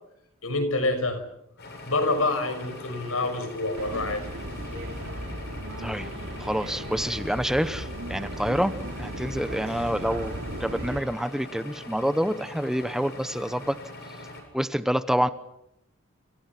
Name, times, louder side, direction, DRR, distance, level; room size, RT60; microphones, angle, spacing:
voice 1, 0.4-1.2 1.9-4.3, left 2 dB, 80° left, 6.0 m, -27 dB
sound 1, 1.6-14.4, left 2 dB, 50° left, 7.7 m, -42 dB
sound 2, 3.7-11.0, right 1 dB, 65° right, 2.8 m, -36 dB
voice 2, 6.4-8.7 9.0-10.3 10.6-13.8 14.5-15.3, equal, ahead, 0.9 m, -27 dB
28.5 x 27.0 x 6.0 m
head